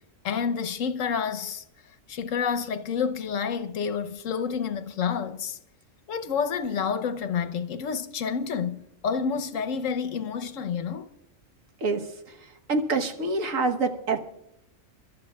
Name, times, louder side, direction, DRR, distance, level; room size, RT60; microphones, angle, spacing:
voice 1, 0.2-1.6 2.1-5.6 6.1-11.1, left 6 dB, 80° left, 1.1 m, -29 dB
voice 2, 11.8-14.2, right 3 dB, 85° right, 1.6 m, -27 dB
29.5 x 12.5 x 2.3 m
omnidirectional pair, 1.3 m